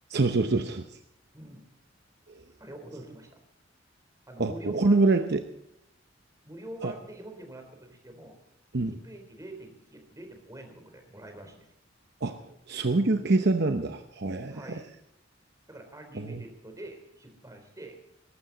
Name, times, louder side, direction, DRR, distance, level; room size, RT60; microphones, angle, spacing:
voice 1, 0.1-0.8 4.4-5.4 6.8-6.9 8.7-9.0 12.2-12.4 12.7-14.8 16.2-16.4, right 3 dB, 60° right, 7 dB, 0.9 m, -25 dB
voice 2, 2.6-3.4 4.3-5.4 6.4-8.3 8.8-11.7 14.5-14.9 15.7-17.9, right 1 dB, 15° right, 5 dB, 3.7 m, -45 dB
20.5 x 12.5 x 4.0 m, 0.80 s
head